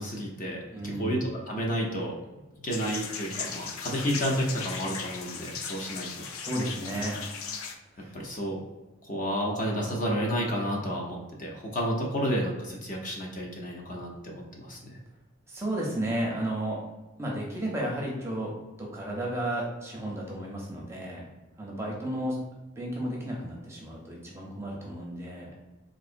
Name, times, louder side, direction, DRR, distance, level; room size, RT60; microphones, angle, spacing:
voice 1, 0.0-0.6 1.0-6.1 8.1-8.6 9.0-15.0, equal, 40° left, -1 dB, 0.6 m, -31 dB
voice 2, 0.7-1.2 5.7-5.9 6.4-7.2 7.9-8.2 15.5-16.8 17.2-18.5 18.8-21.3 21.6-22.4 22.8-25.5, right 1 dB, 15° right, -3 dB, 0.6 m, -33 dB
sound 1, 2.7-7.7, left 5 dB, 85° left, 0.4 m, -37 dB
3.9 x 2.7 x 2.5 m, 1.1 s
head